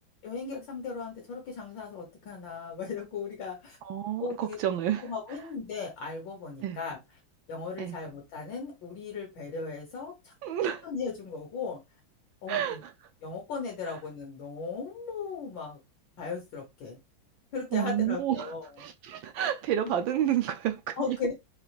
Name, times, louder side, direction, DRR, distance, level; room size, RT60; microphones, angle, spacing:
voice 1, 0.2-3.8 4.2-4.6 5.0-7.0 7.5-10.3 10.8-11.8 12.4-12.8 13.2-15.8 16.2-17.0 17.5-18.8 19.8-19.9 21.0-21.3, left 5 dB, 65° left, 1.8 m, -37 dB
voice 2, 3.8-5.0 6.6-6.8 7.8-8.0 10.4-10.8 12.5-12.9 17.7-18.5 18.8-21.2, right 11 dB, 75° right, 1.3 m, -30 dB
4.9 x 3.1 x 2.3 m
omnidirectional pair, 2.3 m